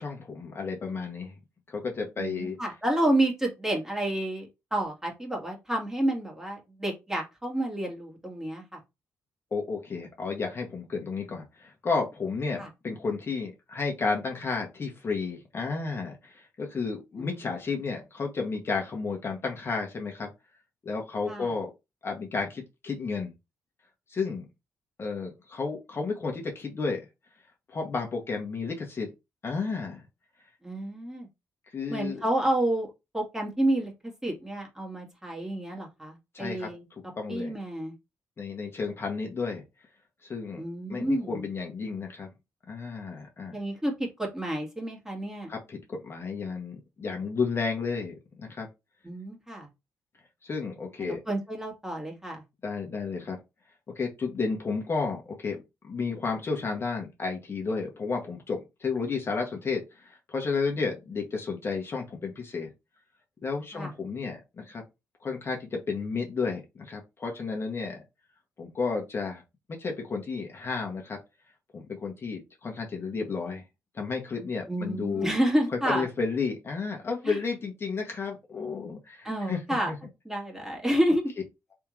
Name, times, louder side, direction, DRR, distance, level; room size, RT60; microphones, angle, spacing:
voice 1, 0.0-1.3 1.7-2.6 9.5-20.3 20.8-21.7 22.0-23.3 24.1-24.4 25.0-27.0 27.7-29.1 29.4-30.0 31.7-32.2 36.3-36.7 37.2-37.5 38.4-39.6 40.2-40.6 40.9-42.3 42.7-43.6 45.5-48.7 50.4-51.2 52.6-53.4 53.9-55.6 55.8-62.7 63.4-64.8 65.2-68.0 68.6-69.4 69.7-71.2 71.7-73.6 73.9-75.3 75.8-79.6 79.9-80.0, left 4 dB, 40° left, 1.4 m, -32 dB
voice 2, 2.2-8.8 12.6-12.7 17.2-17.5 21.3-21.5 30.6-31.3 31.9-33.9 34.2-36.9 37.3-37.9 40.6-41.5 43.5-43.9 44.2-45.5 49.0-49.7 51.0-52.4 63.7-63.9 74.7-76.1 77.2-77.4 79.2-79.9 80.2-81.3, right 1 dB, 10° right, 2.0 m, -29 dB
3.6 x 3.4 x 3.1 m
cardioid pair, 65°, 6 cm